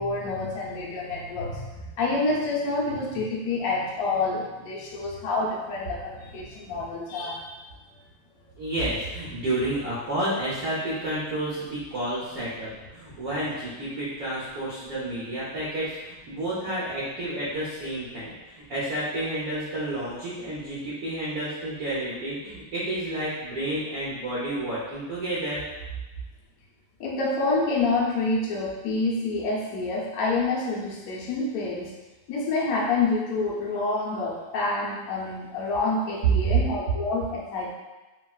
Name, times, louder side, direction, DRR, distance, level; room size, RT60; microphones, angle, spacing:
voice 1, 0.0-7.5 27.0-31.9 32.3-37.7, left 3 dB, 75° left, -4 dB, 0.8 m, -27 dB
voice 2, 8.6-25.6 36.4-36.6, right 1 dB, 70° right, -9 dB, 0.9 m, -30 dB
3.3 x 2.4 x 2.3 m, 1.1 s
omnidirectional pair, 2.3 m